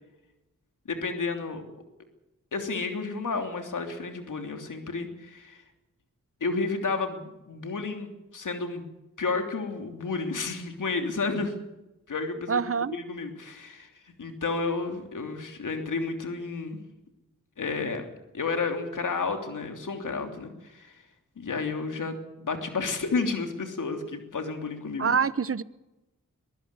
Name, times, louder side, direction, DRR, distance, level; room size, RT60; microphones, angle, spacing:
voice 1, 0.9-1.6 2.5-5.6 6.4-8.8 9.2-11.5 12.1-12.6 12.9-16.8 17.6-18.1 18.3-21.0 21.4-25.1, left 4 dB, 80° left, 5 dB, 3.2 m, -31 dB
voice 2, 12.5-13.0 25.0-25.6, right 6 dB, 45° right, 17 dB, 1.0 m, -25 dB
22.5 x 15.0 x 8.3 m, 0.99 s
cardioid pair, 40°, 31 cm